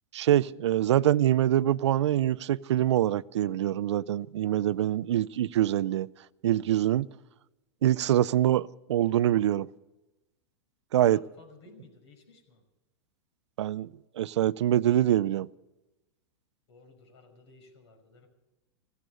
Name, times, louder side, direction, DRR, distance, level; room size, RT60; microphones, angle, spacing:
voice 1, 0.1-6.1 6.4-7.1 7.8-9.7 10.9-11.2 13.6-13.9 14.2-15.5, right 12 dB, 85° right, 0.5 m, -24 dB
voice 2, 10.9-12.6 16.7-18.3, left 3 dB, 75° left, 5.5 m, -55 dB
15.5 x 14.0 x 6.7 m
hypercardioid pair, 125°, 14 cm